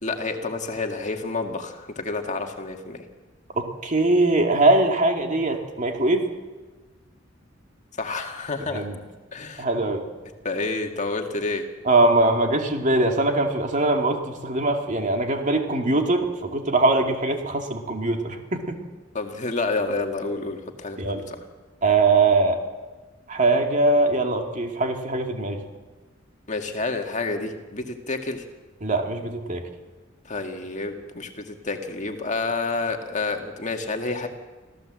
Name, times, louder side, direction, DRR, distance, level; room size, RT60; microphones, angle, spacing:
voice 1, 0.0-3.0 8.0-8.9 9.3-9.6 10.4-11.6 19.1-21.4 26.5-28.4 30.3-34.3, left 3 dB, 40° left, 4 dB, 1.9 m, -29 dB
voice 2, 3.6-6.3 8.7-9.0 9.6-10.0 11.9-18.8 21.0-21.2 21.8-22.6 23.3-25.6 28.8-29.7, right 2 dB, 40° right, 4 dB, 2.5 m, -22 dB
26.0 x 16.0 x 7.7 m, 1.3 s
head